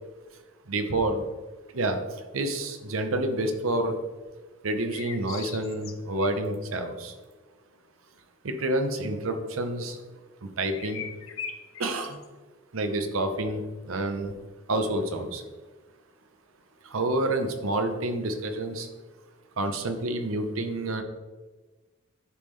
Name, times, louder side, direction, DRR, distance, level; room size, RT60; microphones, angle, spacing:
voice 1, 0.7-1.3 1.7-2.0 2.3-4.0 4.6-7.1 8.4-10.0 10.4-11.0 11.8-12.2 12.7-14.3 14.7-15.4 16.8-18.9 19.6-21.0, right 1 dB, 90° right, 7 dB, 0.8 m, -28 dB
sound 1, 4.9-6.3 10.7-12.2, left 7 dB, 80° left, 0.6 m, -39 dB
11.0 x 3.7 x 3.2 m, 1.3 s
head